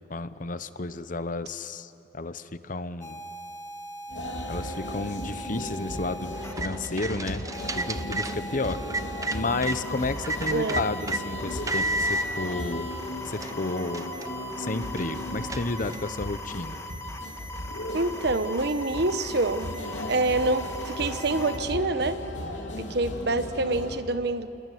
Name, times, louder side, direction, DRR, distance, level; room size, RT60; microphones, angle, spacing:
voice 1, 0.1-3.2 4.5-7.4 7.8-8.8 9.3-12.9 13.2-14.1 14.6-16.8, left 3 dB, 45° left, 12 dB, 0.9 m, -32 dB
sound 1, 3.0-6.5 7.5-21.6, equal, 15° left, 1.6 m, -40 dB
sound 2, 4.1-24.0, left 1 dB, 85° left, 3.2 m, -37 dB
sound 3, 6.3-9.8 10.2-11.2 11.7-12.3 12.9-13.0 13.3-16.2, right 1 dB, 20° right, 0.9 m, -33 dB
voice 2, 10.5-10.9 17.9-19.7 20.1-22.2 22.8-24.5, right 2 dB, 60° right, 11 dB, 1.1 m, -26 dB
28.5 x 21.5 x 9.3 m, 3.0 s
head